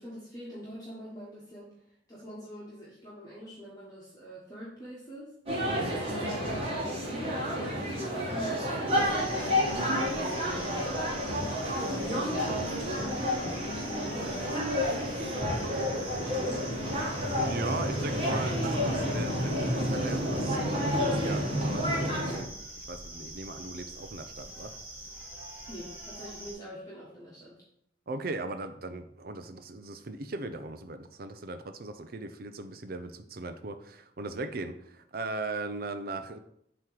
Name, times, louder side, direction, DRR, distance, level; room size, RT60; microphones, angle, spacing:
voice 1, 0.0-5.3 6.0-11.3 11.7-13.1 13.8-16.6 25.5-27.6, equal, 20° left, -8 dB, 1.4 m, -45 dB
sound 1, 5.5-22.4, equal, 35° right, 1.9 m, -30 dB
voice 2, 5.6-6.0 17.4-20.6 21.0-24.7 28.1-36.4, right 2 dB, 55° right, 9 dB, 0.6 m, -38 dB
sound 2, 8.9-26.5, right 1 dB, 10° right, 1.9 m, -45 dB
7.5 x 3.1 x 4.8 m, 0.72 s
head